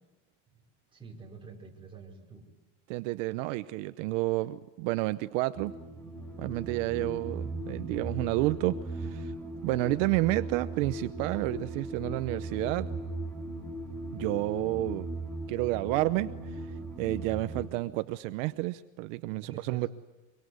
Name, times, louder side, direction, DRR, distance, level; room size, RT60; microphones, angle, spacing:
voice 1, 0.9-2.5 19.3-19.9, right 4 dB, 15° right, -2 dB, 5.0 m, -47 dB
voice 2, 2.9-5.7 6.4-9.3 9.6-12.9 14.1-15.1 15.5-16.6 17.0-19.9, right 19 dB, 70° right, 12 dB, 0.9 m, -30 dB
sound 1, 5.5-17.7, right 2 dB, 5° left, 2.9 m, -38 dB
24.5 x 24.5 x 9.5 m, 1.1 s
cardioid pair, 160°, 40 cm